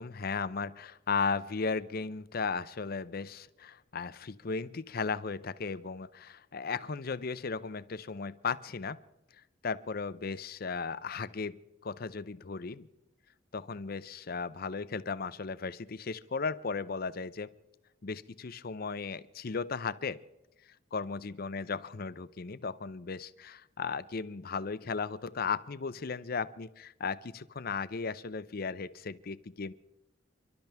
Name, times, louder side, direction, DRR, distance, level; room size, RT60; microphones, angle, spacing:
voice 1, 0.0-9.0 9.6-12.9 13.5-17.5 18.0-20.2 20.9-29.7, left 5 dB, 55° left, 15 dB, 0.6 m, -36 dB
30.0 x 12.0 x 3.5 m, 0.90 s
head